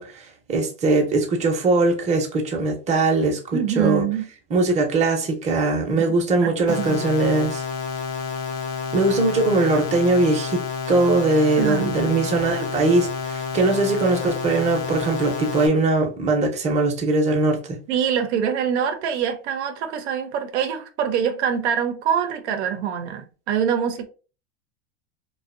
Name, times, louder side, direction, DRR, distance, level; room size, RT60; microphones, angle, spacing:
voice 1, 0.0-4.0 4.5-7.6 8.9-10.6 10.9-17.8, right 2 dB, 20° right, 0.6 m, -21 dB
voice 2, 3.5-4.3 5.9-7.4 11.6-12.4 17.9-24.1, right 8 dB, 80° right, 0.6 m, -25 dB
sound 1, 6.7-15.7, left 5 dB, 80° left, 0.8 m, -29 dB
2.5 x 2.2 x 2.5 m
supercardioid pair, 125°, 33 cm